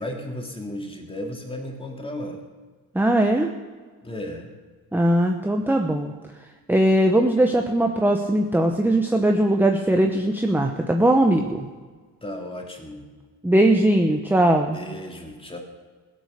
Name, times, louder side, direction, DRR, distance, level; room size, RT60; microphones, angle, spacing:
voice 1, 0.0-2.4 4.0-4.5 12.2-13.1 14.6-15.6, left 1 dB, 15° left, 1 dB, 2.9 m, -34 dB
voice 2, 2.9-3.5 4.9-6.1 6.7-11.7 13.4-14.8, right 1 dB, 5° right, 3 dB, 1.0 m, -20 dB
16.0 x 8.4 x 6.7 m, 1.5 s
cardioid pair, 90°, 35 cm